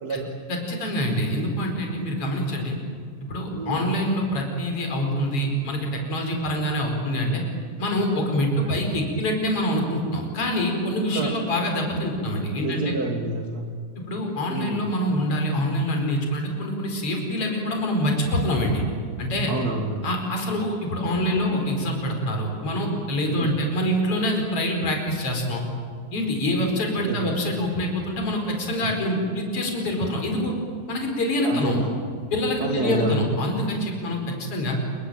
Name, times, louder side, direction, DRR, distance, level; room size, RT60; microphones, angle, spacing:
voice 1, 0.5-2.8 3.3-7.4 7.8-13.0 14.1-18.8 19.2-19.5 20.0-25.6 26.1-30.5 30.9-31.8 32.3-34.8, equal, 40° left, 2 dB, 5.7 m, -25 dB
voice 2, 12.6-13.8 14.5-14.8 19.5-20.1 23.3-23.5 27.0-27.3 28.8-28.9 31.4-31.9 32.6-33.3, right 2 dB, 35° right, 3 dB, 1.8 m, -28 dB
28.5 x 23.0 x 9.0 m, 2.2 s
omnidirectional pair, 4.0 m